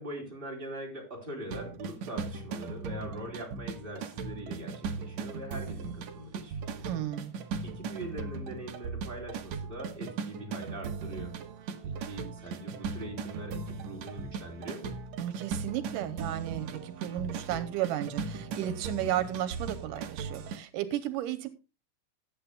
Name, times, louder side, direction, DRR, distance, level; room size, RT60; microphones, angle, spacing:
voice 1, 0.0-7.1 7.6-11.4 11.8-15.0, right 1 dB, 15° right, 4.0 m, -42 dB
sound 1, 1.5-20.6, right 5 dB, 65° right, 2.1 m, -38 dB
voice 2, 6.9-7.3 15.2-21.5, right 12 dB, 85° right, 2.5 m, -34 dB
18.5 x 8.6 x 2.3 m
omnidirectional pair, 3.7 m